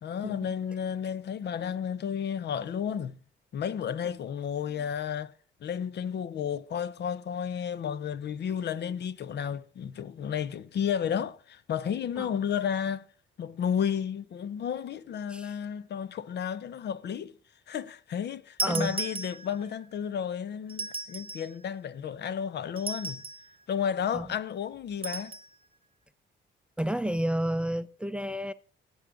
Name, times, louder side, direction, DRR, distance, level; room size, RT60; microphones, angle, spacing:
voice 1, 0.0-3.2 3.5-5.3 5.6-13.1 13.4-17.3 17.7-23.2 23.7-25.4, left 8 dB, 60° left, 0.8 m, -32 dB
voice 2, 18.6-19.0 24.1-24.3 26.8-28.5, right 1 dB, 5° right, 0.5 m, -30 dB
sound 1, 18.6-19.8 20.7-21.6 22.8-23.5 25.0-25.5, right 3 dB, 25° right, 1.1 m, -35 dB
17.0 x 6.4 x 3.8 m
cardioid pair, 90°, 20 cm